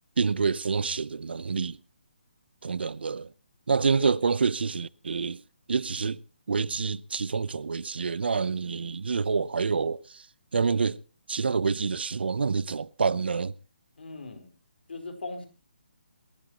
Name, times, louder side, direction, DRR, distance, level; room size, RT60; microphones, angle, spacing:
voice 1, 0.2-1.8 2.6-3.3 3.7-5.4 5.7-6.2 6.5-10.2 10.5-11.0 11.3-13.5, right 5 dB, 70° right, 0.8 m, -27 dB
voice 2, 14.0-14.5 14.9-15.5, left 3 dB, 70° left, 4.5 m, -39 dB
28.0 x 12.0 x 3.0 m
hypercardioid pair, 170°, 6 cm